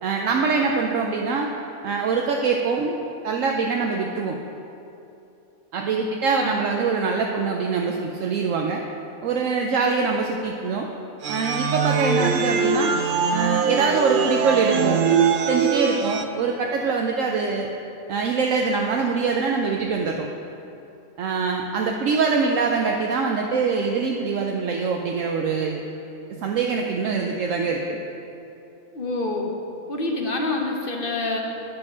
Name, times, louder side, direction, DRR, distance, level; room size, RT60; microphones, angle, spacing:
voice 1, 0.0-1.5 1.8-3.0 3.2-4.4 5.7-8.8 9.2-10.9 11.3-12.9 13.3-15.1 15.5-17.7 18.1-20.3 21.2-25.8 26.3-28.0, right 4 dB, 70° right, 1 dB, 1.0 m, -24 dB
sound 1, 11.2-16.2, right 6 dB, 85° right, 0.4 m, -22 dB
voice 2, 28.9-29.5 29.9-31.4, left 2 dB, 45° left, 1 dB, 1.0 m, -26 dB
9.7 x 6.1 x 6.1 m, 2.8 s
omnidirectional pair, 1.5 m